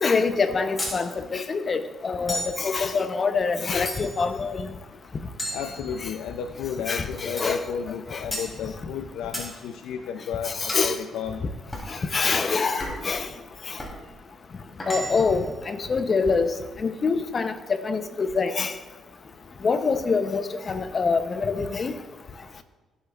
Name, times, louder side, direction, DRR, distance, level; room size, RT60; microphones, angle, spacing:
voice 1, 0.0-4.7 6.9-7.6 8.1-8.3 10.4-11.0 11.9-13.3 13.7-13.8 14.9-16.5 16.8-18.7 19.6-21.9, left 4 dB, 40° left, 9 dB, 0.8 m, -25 dB
sound 1, 0.8-1.0 2.3-2.6 3.9-4.3 5.4-6.3 7.4-7.6 8.3-8.5 9.3-9.5 10.7-10.9 11.7-11.9 12.8-13.1 13.8-14.0 14.8-15.4, equal, 15° left, 3.4 m, -33 dB
voice 2, 5.5-11.4, left 7 dB, 85° left, 6 dB, 0.5 m, -33 dB
16.0 x 8.2 x 2.5 m, 1.2 s
cardioid pair, 90°, 0 cm